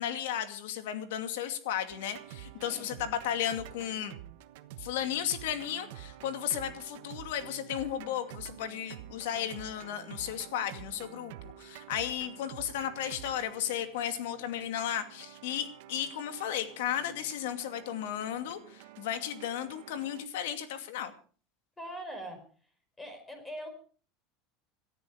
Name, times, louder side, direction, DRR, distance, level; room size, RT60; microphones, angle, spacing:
voice 1, 0.0-4.1 4.8-21.1, left 10 dB, 85° left, 8 dB, 2.4 m, -34 dB
sound 1, 1.9-20.3, right 13 dB, 75° right, 1.2 m, -49 dB
voice 2, 2.6-3.1 21.8-22.7 23.0-23.7, equal, 10° left, 7 dB, 4.7 m, -43 dB
18.5 x 13.5 x 4.9 m, 0.42 s
supercardioid pair, 160°, 0 cm